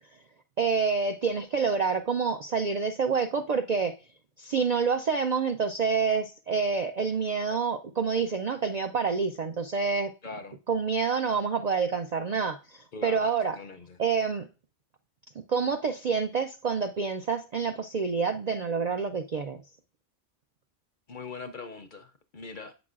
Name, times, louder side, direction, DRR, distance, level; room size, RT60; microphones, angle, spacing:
voice 1, 0.6-3.9 4.4-10.1 10.7-13.5 14.0-14.5 15.5-19.6, right 5 dB, 60° right, 0.4 m, -27 dB
voice 2, 10.2-10.6 12.9-14.0 21.1-22.7, left 4 dB, 50° left, 0.7 m, -41 dB
8.5 x 6.0 x 2.4 m
omnidirectional pair, 1.2 m